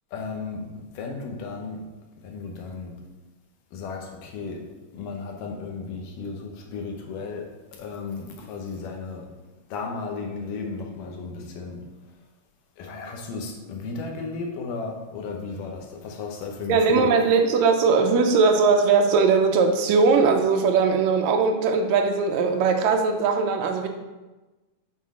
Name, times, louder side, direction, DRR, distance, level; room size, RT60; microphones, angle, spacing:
voice 1, 0.1-0.6 0.9-1.8 2.2-2.9 3.7-4.6 4.9-9.3 9.7-11.8 12.8-17.1, left 4 dB, 85° left, 1 dB, 2.5 m, -34 dB
voice 2, 16.7-23.9, right 4 dB, 85° right, 4 dB, 1.6 m, -20 dB
7.6 x 3.7 x 3.6 m, 1.1 s
omnidirectional pair, 3.7 m